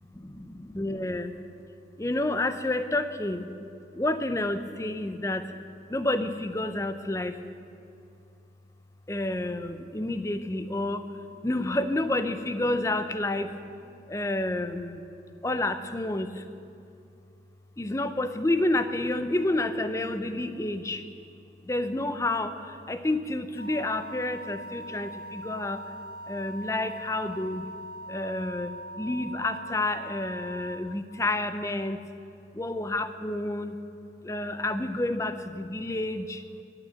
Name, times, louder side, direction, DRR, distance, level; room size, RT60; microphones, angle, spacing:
voice 1, 0.1-1.3 2.0-3.5 3.9-5.5 5.9-7.4 9.1-11.1 11.4-13.5 14.1-15.0 15.4-16.4 17.8-21.0 21.7-25.8 26.3-27.7 28.1-28.7 29.0-32.0 32.5-33.8 34.2-36.4, left 2 dB, 15° left, 10 dB, 0.5 m, -29 dB
sound 1, 23.6-30.8, right 1 dB, 65° left, 3.6 m, -41 dB
14.0 x 6.9 x 9.3 m, 2.5 s
head